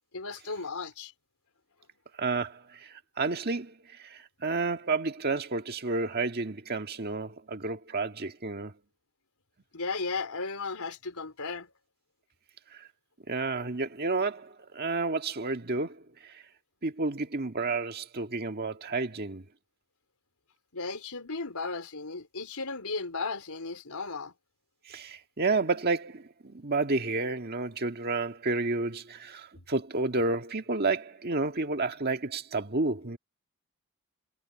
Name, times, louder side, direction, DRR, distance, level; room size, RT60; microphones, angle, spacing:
voice 1, 0.1-1.1 9.7-11.7 20.7-24.3 29.6-29.7, left 4 dB, 80° left, 4.2 m, -35 dB
voice 2, 2.2-8.7 12.7-12.8 13.3-16.4 16.8-19.4 24.9-33.2, right 3 dB, 45° right, 1.7 m, -31 dB
head